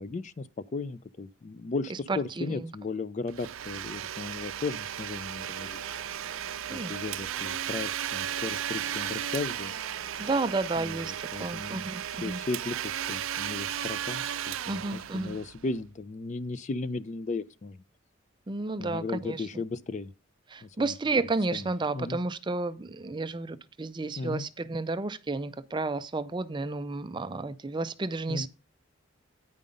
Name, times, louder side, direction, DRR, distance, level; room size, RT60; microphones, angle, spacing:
voice 1, 0.0-5.8 6.7-9.7 10.8-11.9 12.2-17.8 18.8-20.1 20.6-20.9 21.5-21.7 21.9-22.2 24.2-24.5 28.3-28.5, left 3 dB, 35° left, 0.4 m, -36 dB
voice 2, 2.1-2.5 6.7-6.9 10.2-12.4 14.7-15.4 18.5-19.5 20.5-28.5, right 3 dB, 20° right, 0.4 m, -32 dB
Domestic sounds home sounds, 3.3-15.9, right 10 dB, 80° right, 0.5 m, -35 dB
sound 1, 5.4-10.5, left 2 dB, 65° left, 3.5 m, -52 dB
9.5 x 5.4 x 5.1 m
head